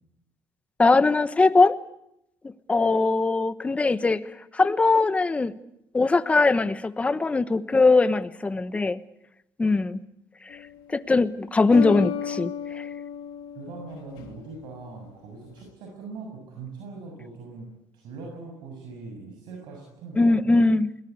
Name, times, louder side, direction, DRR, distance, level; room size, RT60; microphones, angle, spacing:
voice 1, 0.8-1.7 2.7-4.2 4.5-5.5 5.9-9.0 9.6-10.0 10.9-12.9 20.2-20.9, left 3 dB, 15° left, 13 dB, 1.1 m, -21 dB
sound 1, 10.5-11.0 11.7-14.6, left 10 dB, 90° left, 2.9 m, -34 dB
voice 2, 13.6-20.4, right 4 dB, 75° right, 0 dB, 6.9 m, -41 dB
21.5 x 19.0 x 9.6 m, 0.83 s
cardioid pair, 115°, 7 cm